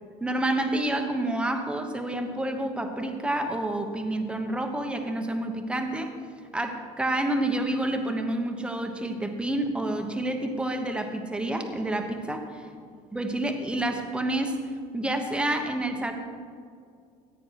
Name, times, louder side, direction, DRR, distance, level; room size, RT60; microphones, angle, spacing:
voice 1, 0.2-6.2 6.5-12.4 13.1-14.6 14.9-16.1, right 1 dB, 5° right, 5 dB, 1.1 m, -28 dB
14.5 x 9.2 x 4.7 m, 2.3 s
cardioid pair, 135°, 16 cm